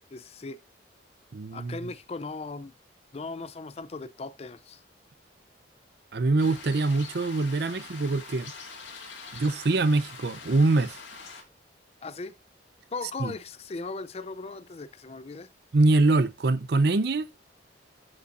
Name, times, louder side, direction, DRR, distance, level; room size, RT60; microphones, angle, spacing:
voice 1, 0.1-0.6 1.5-2.7 3.1-4.8 12.0-12.3 12.9-15.5, left 3 dB, 30° left, 0.4 m, -38 dB
voice 2, 1.3-1.8 6.1-8.5 9.3-11.0 13.2-13.3 15.7-17.3, right 2 dB, 55° right, 0.5 m, -24 dB
sound 1, 6.4-11.4, left 4 dB, 70° left, 2.2 m, -44 dB
13.0 x 5.5 x 2.5 m
head